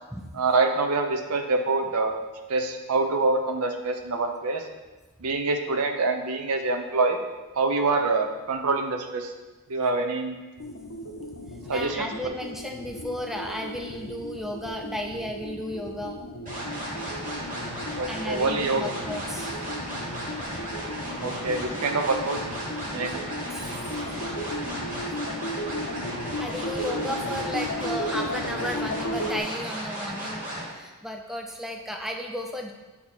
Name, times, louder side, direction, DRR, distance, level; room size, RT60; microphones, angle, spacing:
voice 1, 0.4-2.1 2.5-4.6 5.2-7.2 7.6-9.3 9.7-10.4 11.7-12.1 18.0-18.8 21.2-22.4 22.9-23.2, right 3 dB, 75° right, 5 dB, 0.6 m, -25 dB
sound 1, 10.6-29.4, left 1 dB, 60° left, 0.7 m, -35 dB
voice 2, 11.7-16.2 18.1-19.5 23.5-24.2 26.4-32.7, equal, ahead, 3 dB, 0.3 m, -34 dB
sound 2, 16.5-30.6, right 1 dB, 35° right, 1.9 m, -35 dB
8.0 x 2.8 x 4.3 m, 1.2 s
head